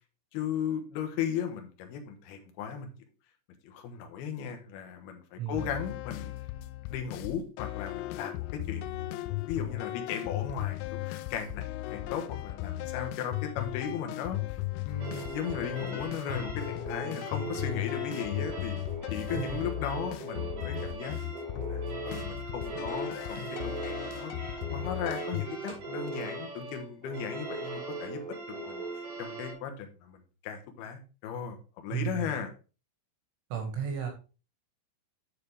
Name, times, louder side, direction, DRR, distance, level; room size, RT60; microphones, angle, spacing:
voice 1, 0.3-2.9 3.6-6.4 6.8-14.6 14.9-18.8 19.1-21.2 21.7-24.3 24.7-28.4 28.7-28.8 29.2-32.5, left 7 dB, 70° left, 4 dB, 2.6 m, -37 dB
voice 2, 5.4-5.7 19.3-19.7 31.9-32.3 33.5-34.1, right 8 dB, 70° right, 4 dB, 4.2 m, -34 dB
sound 1, 5.6-25.5, left 16 dB, 90° left, 3.1 m, -37 dB
sound 2, 15.0-29.5, right 2 dB, 50° right, 3.3 m, -39 dB
8.1 x 6.7 x 3.4 m, 0.33 s
omnidirectional pair, 5.7 m